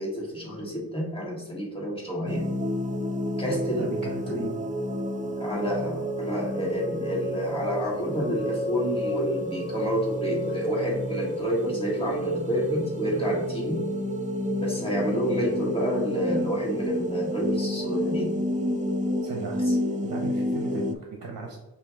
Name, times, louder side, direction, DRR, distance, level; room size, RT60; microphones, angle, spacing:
voice 1, 0.0-2.5 3.4-3.9 4.3-4.5 5.4-13.9 14.6-18.4 19.6-19.7, equal, 15° left, -4 dB, 1.6 m, -29 dB
sound 1, 2.3-20.9, equal, 20° right, 0.3 m, -30 dB
voice 2, 3.8-4.5 19.2-19.6 20.0-21.6, right 2 dB, 55° right, 0 dB, 0.9 m, -37 dB
5.7 x 2.6 x 3.5 m, 1.1 s
wide cardioid pair, 95°, 41 cm